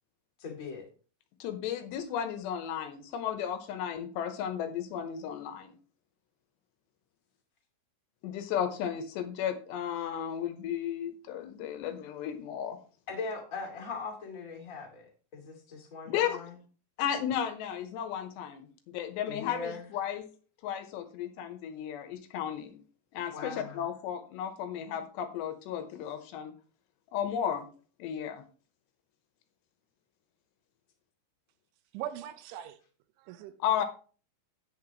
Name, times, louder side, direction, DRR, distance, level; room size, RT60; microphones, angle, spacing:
voice 1, 0.4-0.9 13.1-16.5 19.3-19.9 23.3-23.8, left 4 dB, 30° left, 1.7 m, -40 dB
voice 2, 1.4-5.7 8.2-12.8 16.1-16.4 17.0-20.3 20.6-22.8 23.1-26.5 27.1-27.7 28.0-28.4 33.6-33.9, left 9 dB, 75° left, 2.7 m, -34 dB
voice 3, 31.9-32.8 33.2-33.5 33.8-33.9, right 11 dB, 80° right, 2.9 m, -40 dB
10.0 x 9.6 x 3.0 m
omnidirectional pair, 5.7 m